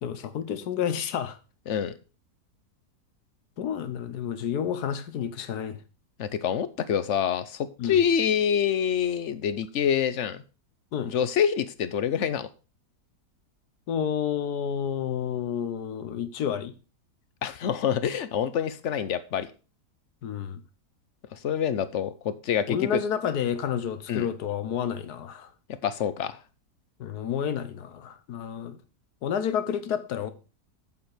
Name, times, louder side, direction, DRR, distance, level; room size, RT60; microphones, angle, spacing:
voice 1, 0.0-1.4 3.6-5.8 7.8-8.0 10.9-11.1 13.9-16.7 20.2-20.6 22.7-25.5 27.0-28.8 29.2-30.3, left 8 dB, 75° left, 1.5 m, -30 dB
voice 2, 6.2-10.4 11.1-12.5 17.4-19.5 21.3-23.0 24.1-24.3 25.8-26.4, left 8 dB, 55° left, 0.9 m, -26 dB
8.3 x 7.1 x 5.0 m
omnidirectional pair, 1.8 m